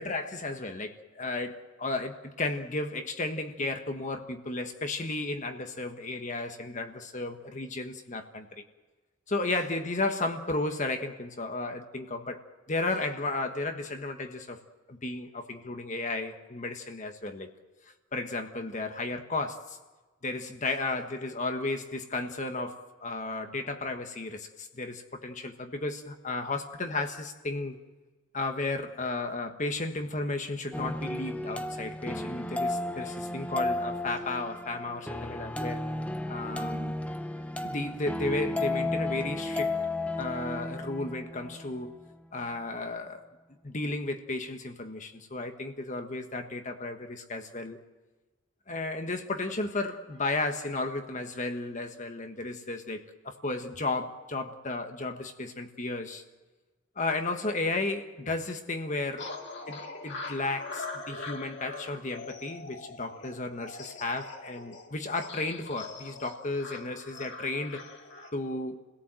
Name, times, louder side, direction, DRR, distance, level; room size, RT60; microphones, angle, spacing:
voice 1, 0.0-8.6 9.3-14.6 14.9-17.5 18.1-19.8 20.2-27.8 28.3-35.8 36.3-37.0 37.6-39.8 40.2-41.9 42.3-43.2 43.6-47.8 48.7-56.2 56.9-59.3 59.7-67.8 68.3-68.8, left 2 dB, 35° left, 6 dB, 1.4 m, -34 dB
sound 1, 30.7-41.7, left 2 dB, 5° left, 0.9 m, -33 dB
sound 2, 59.2-68.3, left 3 dB, 60° left, 2.4 m, -42 dB
29.0 x 17.5 x 7.7 m, 1.3 s
head